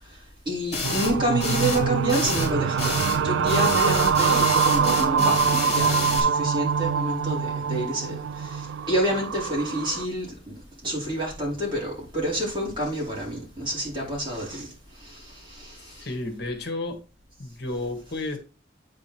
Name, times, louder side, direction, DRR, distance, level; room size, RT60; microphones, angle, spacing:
voice 1, 0.4-10.3 10.8-14.7 15.0-16.1, right 1 dB, 30° right, 4.7 m, -28 dB
sound 1, 0.7-1.1 1.4-1.8 2.1-3.2 3.5-6.2, left 3 dB, 40° left, 2.8 m, -29 dB
sound 2, 0.8-10.1, right 6 dB, 90° right, 0.4 m, -24 dB
voice 2, 15.8-17.0 17.4-18.4, left 2 dB, 65° left, 1.6 m, -32 dB
8.5 x 5.0 x 4.5 m
head